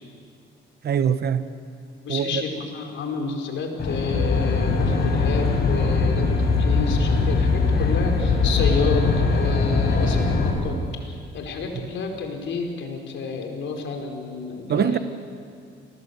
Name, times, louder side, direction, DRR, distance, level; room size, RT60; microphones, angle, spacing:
voice 1, 0.8-1.4 2.1-2.4 14.7-15.0, right 8 dB, 55° right, 11 dB, 1.1 m, -22 dB
voice 2, 2.0-15.0, left 4 dB, 70° left, 3 dB, 4.6 m, -30 dB
Aircraft, 3.8-10.5, left 4 dB, 50° left, 6.6 m, -21 dB
28.0 x 19.5 x 8.2 m, 2.4 s
cardioid pair, 90°, 20 cm